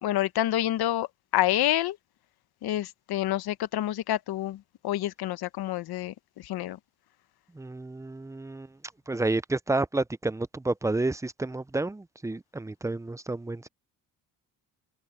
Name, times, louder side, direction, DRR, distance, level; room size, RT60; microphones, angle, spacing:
voice 1, 0.0-1.1 1.3-2.0 2.6-6.8, left 13 dB, 70° left, 1.2 m, -28 dB
voice 2, 7.5-8.7 9.1-13.7, right 2 dB, 10° right, 0.6 m, -30 dB
supercardioid pair, 80°, 40 cm